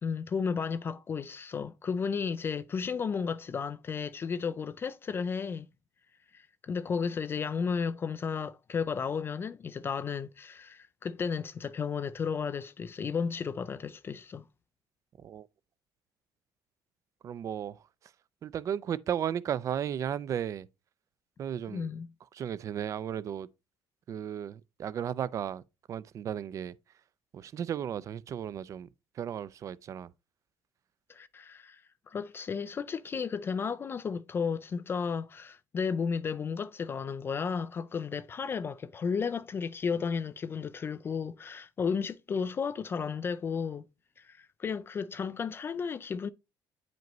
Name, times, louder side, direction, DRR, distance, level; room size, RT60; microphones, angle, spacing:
voice 1, 0.0-5.7 6.3-14.5 21.7-22.1 31.1-43.8 44.2-46.3, left 6 dB, 25° left, 0.3 m, -33 dB
voice 2, 17.2-17.8 18.4-20.7 21.4-21.9 22.3-23.5 24.1-25.6 25.9-26.7 27.3-28.9 29.2-30.1, right 9 dB, 40° right, 0.4 m, -34 dB
9.1 x 5.1 x 3.0 m
cardioid pair, 155°, 8 cm